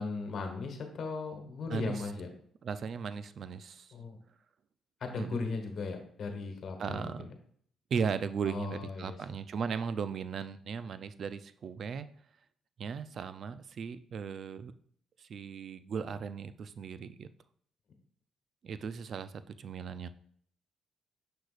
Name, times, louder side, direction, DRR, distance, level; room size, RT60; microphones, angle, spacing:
voice 1, 0.0-2.3 3.9-4.2 5.0-7.3 8.4-9.2, left 4 dB, 60° left, 4 dB, 1.3 m, -37 dB
voice 2, 1.7-2.0 2.6-3.9 5.2-5.4 6.8-7.3 7.9-12.1 12.8-14.7 15.2-17.3 18.6-20.1, right 6 dB, 55° right, 13 dB, 0.4 m, -37 dB
6.6 x 6.2 x 2.5 m, 0.63 s
cardioid pair, 90°, 0 cm